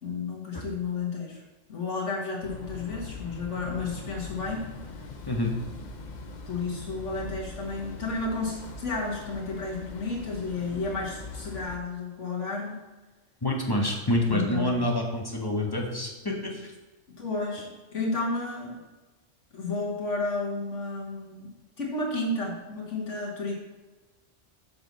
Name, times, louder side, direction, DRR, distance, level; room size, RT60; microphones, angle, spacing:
voice 1, 0.0-1.4 1.7-4.7 6.5-12.8 14.3-14.8 17.2-18.8 19.5-21.5 21.8-23.5, left 3 dB, 75° left, -2 dB, 2.0 m, -32 dB
sound 1, 2.4-11.8, left 3 dB, 45° left, 0.8 m, -41 dB
voice 2, 13.4-16.6, left 1 dB, 20° left, 0 dB, 1.2 m, -27 dB
7.6 x 6.1 x 4.1 m, 1.2 s
omnidirectional pair, 1.3 m